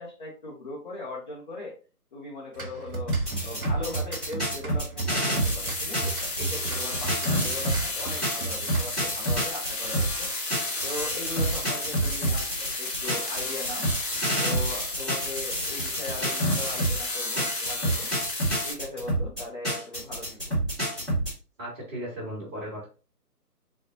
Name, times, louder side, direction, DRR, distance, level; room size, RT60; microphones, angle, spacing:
voice 1, 0.0-1.7 2.1-3.1 3.4-10.3 10.8-13.9 14.4-18.1 18.6-20.4, left 2 dB, 30° left, -6 dB, 0.9 m, -39 dB
sound 1, 2.5-9.2, right 3 dB, 60° right, 1.3 m, -36 dB
sound 2, 3.1-7.8 8.2-17.0 17.4-21.3, right 1 dB, ahead, 0.9 m, -28 dB
sound 3, 5.3-18.7, left 2 dB, 85° left, 1.8 m, -32 dB
voice 2, 21.6-22.9, equal, 15° right, -5 dB, 1.8 m, -36 dB
4.3 x 2.4 x 3.8 m, 0.34 s
figure-of-eight pair, 150°, 48 cm